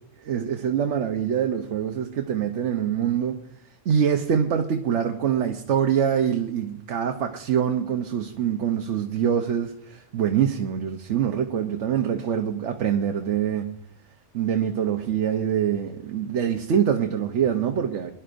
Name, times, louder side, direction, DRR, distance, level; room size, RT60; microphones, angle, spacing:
voice 1, 0.2-3.4 3.8-13.7 14.3-18.1, right 8 dB, 65° right, 5 dB, 1.1 m, -24 dB
22.0 x 11.0 x 2.6 m, 0.72 s
omnidirectional pair, 1.3 m